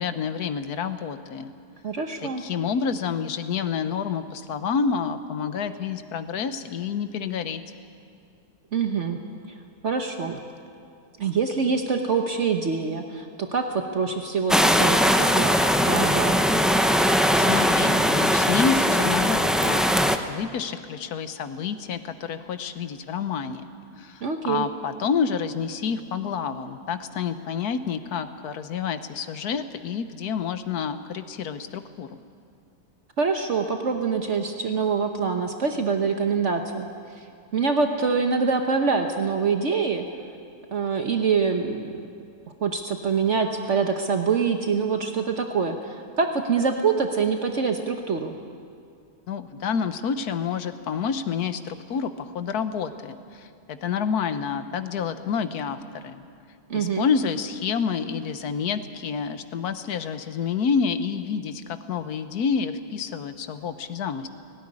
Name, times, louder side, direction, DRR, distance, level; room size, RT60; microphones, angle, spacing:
voice 1, 0.0-1.5 2.2-7.6 17.3-23.7 24.0-32.1 49.3-56.2 56.7-64.3, left 6 dB, 80° left, 10 dB, 1.5 m, -28 dB
voice 2, 1.8-2.4 8.7-9.2 9.8-10.4 11.2-16.3 24.2-24.7 33.2-36.9 37.5-40.0 40.7-41.9 42.6-48.4 56.7-57.1, right 5 dB, 55° right, 5 dB, 1.3 m, -25 dB
sound 1, 14.5-20.2, equal, ahead, 0.4 m, -20 dB
18.0 x 17.5 x 9.8 m, 2.3 s
omnidirectional pair, 1.6 m